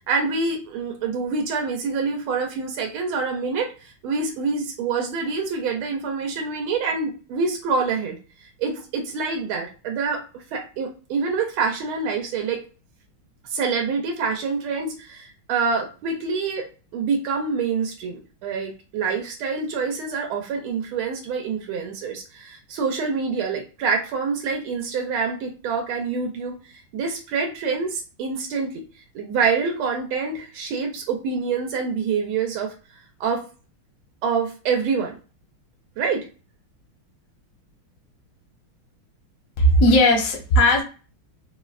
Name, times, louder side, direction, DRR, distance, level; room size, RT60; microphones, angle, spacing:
voice 1, 0.1-12.6 13.5-16.7 16.9-28.8 29.1-32.7 33.2-33.4 34.2-35.2 36.0-36.3, right 5 dB, 90° right, 2 dB, 1.5 m, -26 dB
voice 2, 39.6-40.8, left 1 dB, 60° left, 2 dB, 0.8 m, -16 dB
3.9 x 2.1 x 2.4 m, 0.34 s
omnidirectional pair, 2.3 m